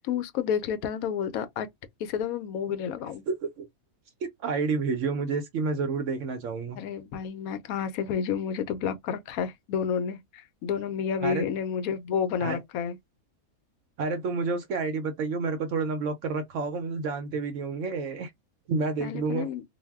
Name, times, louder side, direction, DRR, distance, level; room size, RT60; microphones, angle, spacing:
voice 1, 0.0-1.7 2.0-3.2 6.8-13.0 19.0-19.6, left 7 dB, 85° left, 1.0 m, -30 dB
voice 2, 3.3-3.7 4.2-6.8 11.2-11.4 12.4-12.6 14.0-18.3 18.7-19.5, right 4 dB, 70° right, 0.9 m, -29 dB
2.6 x 2.0 x 3.4 m
omnidirectional pair, 1.5 m